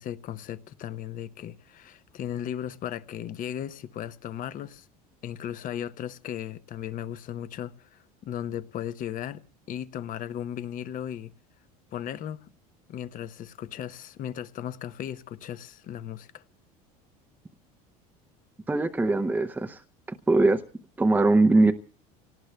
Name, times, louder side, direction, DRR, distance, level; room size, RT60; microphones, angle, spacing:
voice 1, 0.0-4.9 5.2-9.4 9.7-11.3 11.9-12.5 12.9-16.4, left 10 dB, 45° left, 0.8 m, -36 dB
voice 2, 18.7-19.8 20.3-20.6 21.0-21.7, right 2 dB, 10° right, 0.6 m, -21 dB
28.0 x 18.0 x 2.3 m
supercardioid pair, 95°, 20 cm